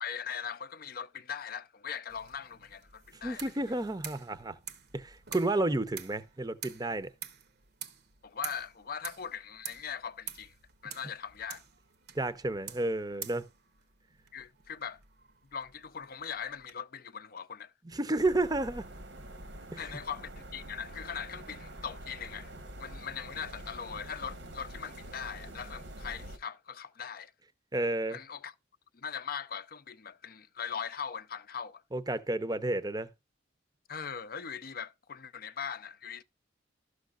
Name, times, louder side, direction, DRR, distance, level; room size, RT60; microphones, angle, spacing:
voice 1, 0.0-3.4 8.2-10.5 10.8-11.6 14.3-15.0 15.5-17.7 19.8-22.5 22.8-27.3 28.1-28.5 28.9-31.8 33.9-36.2, left 7 dB, 50° left, 0.5 m, -40 dB
sound 1, 2.1-16.7, right 8 dB, 55° right, 0.8 m, -48 dB
voice 2, 3.2-4.6 4.9-7.1 12.1-13.4 17.9-18.9 19.7-19.9 27.7-28.2 31.9-33.1, right 2 dB, 20° right, 0.6 m, -31 dB
sound 2, 18.2-26.4, right 1 dB, 75° right, 1.3 m, -46 dB
12.5 x 6.4 x 2.4 m
head